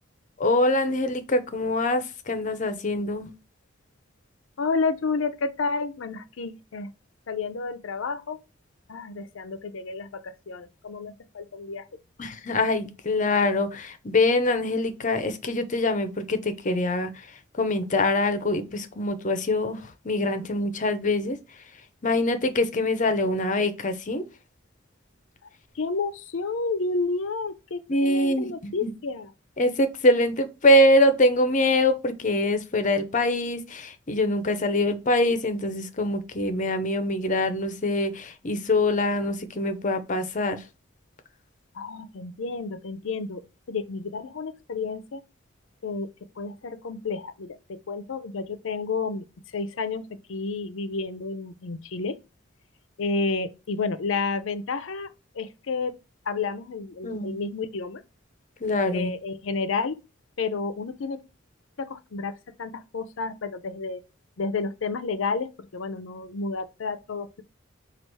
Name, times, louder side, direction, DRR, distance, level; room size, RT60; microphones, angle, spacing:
voice 1, 0.4-3.3 12.2-17.3 17.6-21.4 22.0-24.2 27.9-28.5 28.8-28.9 29.6-40.6 57.0-57.4 58.6-59.1, left 1 dB, 40° left, 0.6 m, -24 dB
voice 2, 4.6-6.9 7.3-8.4 8.9-11.9 25.7-29.3 41.7-43.4 43.7-45.2 45.8-46.1 46.4-52.2 53.0-55.1 55.3-55.9 56.3-58.0 58.9-60.0 60.4-61.2 61.8-64.0 64.4-67.4, left 4 dB, 80° left, 0.5 m, -31 dB
4.6 x 2.4 x 4.5 m
head